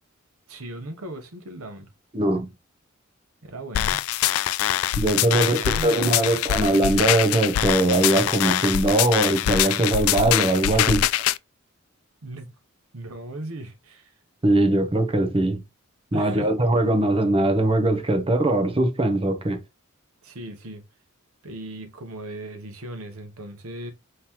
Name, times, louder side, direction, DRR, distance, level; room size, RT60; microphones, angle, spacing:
voice 1, 0.5-1.9 3.4-4.0 5.3-6.3 12.2-12.5 12.9-14.1 16.1-16.6 20.2-20.8 21.4-23.9, right 1 dB, 85° right, 1.0 m, -37 dB
voice 2, 2.1-2.5 5.0-11.1 14.4-15.6 16.1-19.6, right 1 dB, 25° right, 0.7 m, -21 dB
sound 1, 3.7-11.4, left 12 dB, 75° left, 0.3 m, -24 dB
5.5 x 3.0 x 3.0 m
head